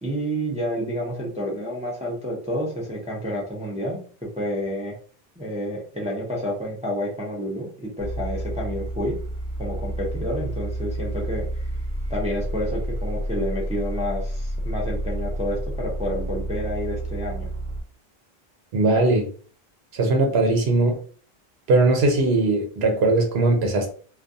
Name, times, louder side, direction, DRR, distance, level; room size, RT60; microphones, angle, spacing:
voice 1, 0.0-4.0 4.4-4.9 5.4-9.1 9.6-11.7 12.1-17.5, equal, 10° right, 0.4 m, -29 dB
sound 1, 8.0-17.8, right 1 dB, 50° right, 0.9 m, -30 dB
voice 2, 18.7-19.3 19.9-20.9 21.7-23.9, right 2 dB, 90° right, 0.9 m, -20 dB
2.3 x 2.2 x 2.6 m
omnidirectional pair, 1.0 m